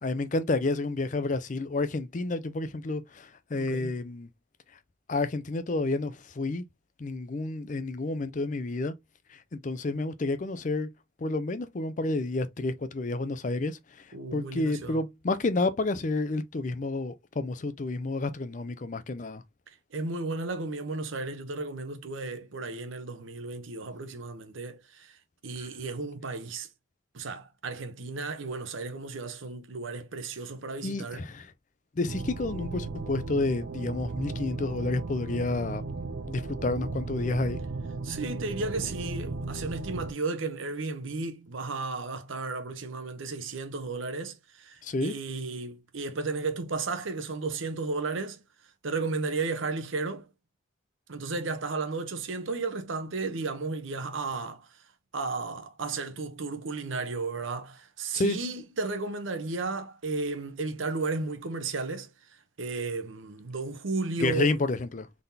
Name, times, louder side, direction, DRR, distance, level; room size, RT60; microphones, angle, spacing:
voice 1, 0.0-4.3 5.1-6.6 7.0-8.9 9.3-10.9 11.2-14.0 14.3-19.4 25.6-25.7 30.8-31.5 32.0-35.8 36.3-37.6 44.8-45.1 58.1-58.4 64.2-65.1, left 2 dB, 40° left, 0.5 m, -30 dB
voice 2, 3.5-3.9 14.1-15.0 19.7-26.7 27.1-31.3 38.0-48.4 48.8-50.3 51.1-54.8 55.1-64.6, right 3 dB, 85° right, 0.8 m, -34 dB
sound 1, 32.1-40.1, right 3 dB, 60° right, 0.5 m, -36 dB
3.9 x 3.5 x 2.7 m
head